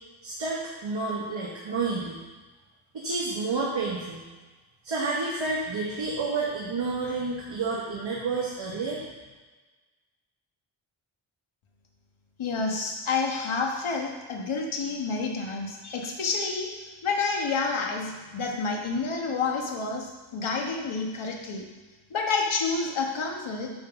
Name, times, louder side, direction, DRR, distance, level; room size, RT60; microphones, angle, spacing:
voice 1, 0.2-2.2 2.9-4.2 4.8-9.0, right 3 dB, 65° right, -5 dB, 1.4 m, -30 dB
voice 2, 12.4-21.6 22.1-23.7, left 4 dB, 80° left, 1 dB, 1.4 m, -29 dB
8.5 x 4.0 x 5.8 m, 1.2 s
wide cardioid pair, 130°, 48 cm